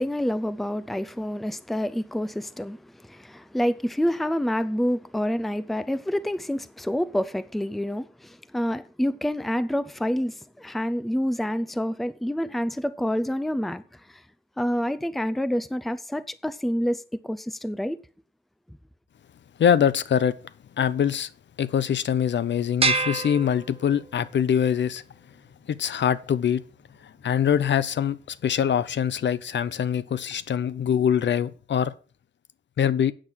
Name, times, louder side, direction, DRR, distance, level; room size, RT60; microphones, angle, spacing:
voice 1, 0.0-14.2 14.6-18.0 18.7-18.8, equal, ahead, 0.4 m, -28 dB
voice 2, 19.6-20.3 20.8-21.3 21.6-25.0 25.7-26.6 27.2-31.9 32.8-33.1, left 8 dB, 75° left, 0.7 m, -23 dB
sound 1, 22.8-24.3, right 4 dB, 30° right, 0.7 m, -27 dB
8.9 x 7.4 x 6.2 m
wide cardioid pair, 175°, 19 cm